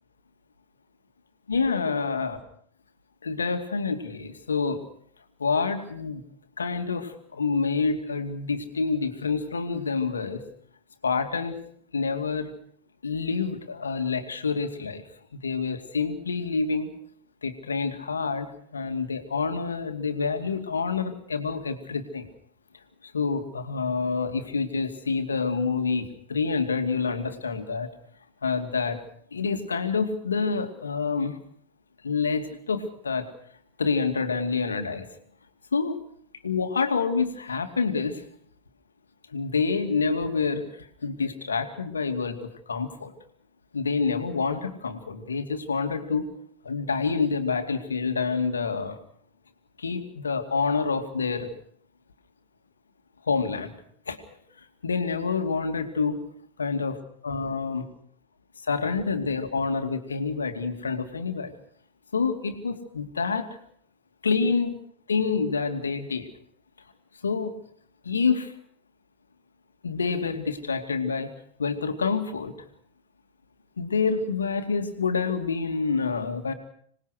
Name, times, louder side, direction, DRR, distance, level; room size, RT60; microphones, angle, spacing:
voice 1, 1.5-2.4 3.2-4.8 5.4-6.2 6.6-10.4 11.0-11.6 11.9-12.5 13.0-15.0 15.3-16.9 17.4-22.3 23.0-27.9 28.4-29.0 29.3-31.4 32.0-33.3 33.8-35.1 35.7-36.0 36.4-38.2 39.3-43.1 43.7-46.3 46.6-49.0 49.8-51.5 53.2-53.8 54.1-54.2 54.8-56.2 56.6-56.9 57.2-57.9 58.6-61.5 62.1-63.6 64.2-64.8 65.1-66.3 67.2-67.6 68.0-68.5 69.8-71.3 71.6-72.5 73.8-76.5, left 4 dB, 70° left, 8 dB, 2.5 m, -27 dB
26.5 x 20.0 x 6.5 m, 0.64 s
figure-of-eight pair, 90°, 0 cm